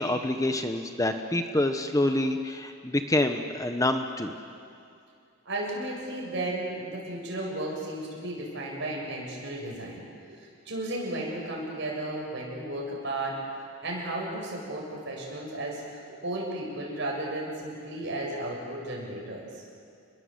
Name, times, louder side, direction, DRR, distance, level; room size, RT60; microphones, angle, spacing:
voice 1, 0.0-4.3, left 1 dB, 15° left, 6 dB, 1.0 m, -27 dB
voice 2, 5.4-10.0 10.3-13.4 13.8-15.8 16.2-19.6, right 1 dB, 60° right, -2 dB, 7.7 m, -34 dB
29.0 x 21.5 x 8.1 m, 2.4 s
head